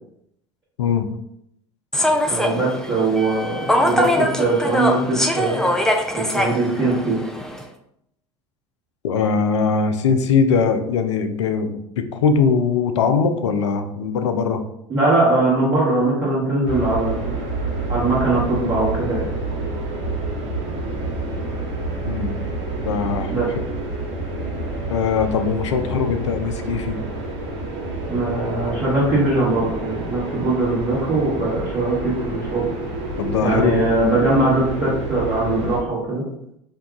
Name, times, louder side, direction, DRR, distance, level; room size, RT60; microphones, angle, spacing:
voice 1, 0.8-1.1 9.0-14.6 22.0-22.4 22.8-23.3 24.9-27.0 33.2-33.7, left 5 dB, 80° left, 7 dB, 0.4 m, -21 dB
Human voice / Subway metro underground, 1.9-7.6, left 1 dB, 5° left, 0.4 m, -22 dB
voice 2, 2.3-5.6 6.1-7.2 14.9-17.4 17.9-19.3 23.3-23.5 28.1-32.7 33.4-36.2, right 2 dB, 30° right, -9 dB, 1.3 m, -21 dB
sound 1, 16.7-35.8, right 2 dB, 65° right, 1.1 m, -28 dB
2.7 x 2.3 x 3.6 m, 0.76 s
hypercardioid pair, 75°, 15 cm